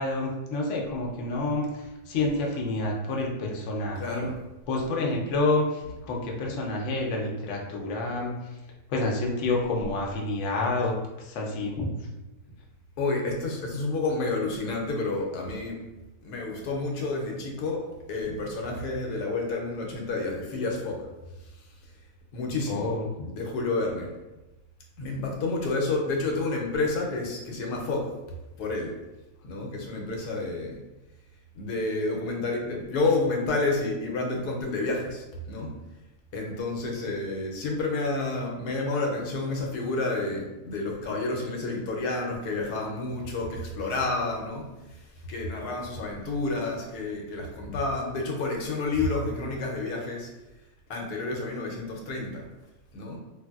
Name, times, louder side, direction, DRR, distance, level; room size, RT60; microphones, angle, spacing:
voice 1, 0.0-4.3 4.7-8.3 8.9-10.9 11.2-11.9 22.7-23.1, left 2 dB, 65° left, -1 dB, 0.8 m, -28 dB
voice 2, 4.0-4.4 13.0-15.8 16.2-21.1 21.6-21.7 22.3-22.9 23.2-24.1 25.0-28.1 28.6-28.9 29.4-30.8 31.5-35.8 36.3-50.3 50.9-52.5 52.9-53.2, left 3 dB, 90° left, 0 dB, 1.2 m, -30 dB
3.2 x 2.5 x 2.3 m, 1.0 s
omnidirectional pair, 1.7 m